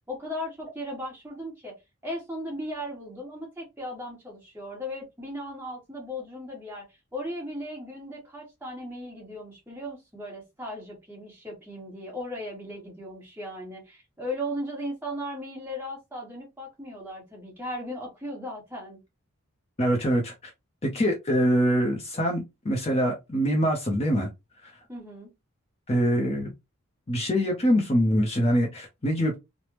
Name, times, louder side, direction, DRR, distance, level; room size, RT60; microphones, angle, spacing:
voice 1, 0.1-1.7 2.0-6.8 7.1-19.0 24.9-25.3, equal, 10° right, 1.2 m, -37 dB
voice 2, 19.8-20.5 20.8-24.3 24.6-24.7 25.9-26.5 27.1-29.3, equal, 30° left, 0.6 m, -24 dB
3.3 x 2.0 x 2.9 m
head